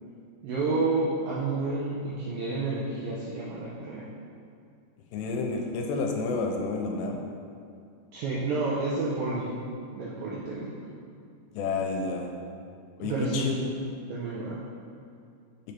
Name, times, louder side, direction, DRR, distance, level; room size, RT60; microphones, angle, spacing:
voice 1, 0.4-4.1 8.1-9.5 9.9-10.7 13.0-13.6 14.1-14.6, right 3 dB, 80° right, -6 dB, 2.0 m, -30 dB
voice 2, 5.1-7.2 11.5-12.3 13.0-13.5, left 3 dB, 85° left, 2 dB, 2.8 m, -30 dB
6.8 x 5.2 x 4.4 m, 2.4 s
omnidirectional pair, 5.0 m